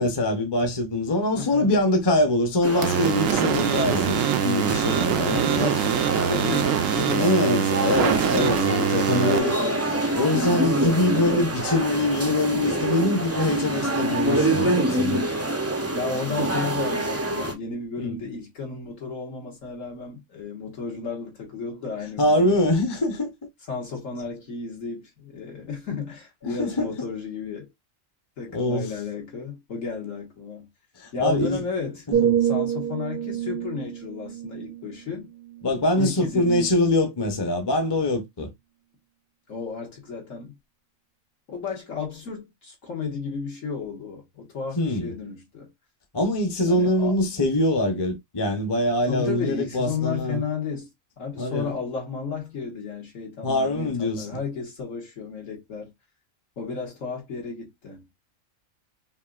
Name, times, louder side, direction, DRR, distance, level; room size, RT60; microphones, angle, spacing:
voice 1, 0.0-5.6 7.2-9.6 10.2-15.3 18.0-18.2 22.2-23.3 26.6-26.9 28.5-28.9 31.0-31.6 32.2-32.3 35.6-38.5 44.8-45.1 46.1-50.4 51.4-51.7 53.4-54.3, left 1 dB, 25° left, 0.7 m, -24 dB
voice 2, 1.4-1.8 4.7-7.9 9.0-10.1 15.9-22.5 23.7-27.7 28.4-30.7 31.1-32.1 32.4-35.3 36.0-36.8 39.5-40.6 41.5-45.7 46.7-47.2 49.1-50.9 51.2-55.9 56.6-58.0, left 5 dB, 70° left, 1.9 m, -33 dB
sound 1, 2.6-17.5, right 1 dB, 20° right, 0.4 m, -27 dB
sound 2, 2.8-9.4, right 9 dB, 75° right, 1.0 m, -24 dB
sound 3, 32.1-36.0 36.5-36.8, right 9 dB, 55° right, 0.8 m, -27 dB
5.4 x 2.5 x 2.4 m
omnidirectional pair, 1.4 m